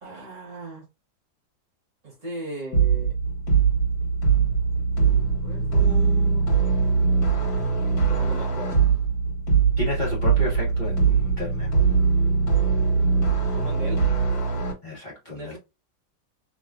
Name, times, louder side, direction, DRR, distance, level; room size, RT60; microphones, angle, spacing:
voice 1, 0.0-0.8 2.0-3.1 5.0-6.4 8.1-8.8 13.5-14.1 15.3-15.6, right 1 dB, 45° right, 1.4 m, -38 dB
sound 1, 2.7-14.7, right 5 dB, 50° left, 1.9 m, -21 dB
voice 2, 9.8-11.7 14.8-15.6, left 2 dB, 25° left, 1.2 m, -32 dB
3.5 x 2.9 x 2.4 m
omnidirectional pair, 2.1 m